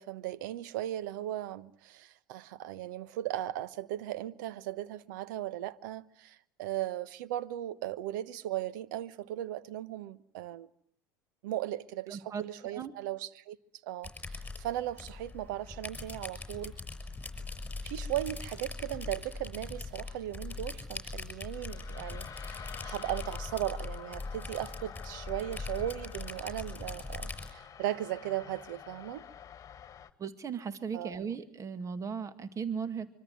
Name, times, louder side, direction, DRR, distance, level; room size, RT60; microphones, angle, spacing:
voice 1, 0.0-10.7 11.4-13.6 13.8-16.7 17.8-29.2 30.9-31.2, right 13 dB, 70° right, 1.2 m, -37 dB
voice 2, 12.1-12.4 12.7-12.9 30.2-33.1, right 6 dB, 30° right, 2.1 m, -37 dB
sound 1, 14.0-27.5, left 3 dB, 15° left, 6.1 m, -41 dB
sound 2, 14.2-30.1, left 8 dB, 30° left, 2.0 m, -51 dB
25.0 x 25.0 x 9.3 m
hypercardioid pair, 80°, 11 cm